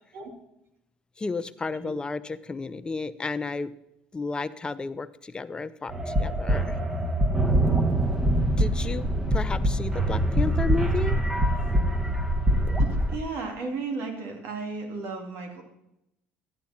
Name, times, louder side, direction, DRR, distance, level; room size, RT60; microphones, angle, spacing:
voice 1, 1.2-3.7 4.1-6.8 7.5-7.7 8.6-11.2, left 3 dB, 20° left, 12 dB, 0.6 m, -32 dB
sound 1, 5.9-13.2, right 1 dB, 20° right, 1.5 m, -24 dB
voice 2, 12.8-15.6, right 4 dB, 75° right, 3 dB, 2.7 m, -34 dB
13.0 x 9.3 x 4.3 m, 0.85 s
supercardioid pair, 95°, 4 cm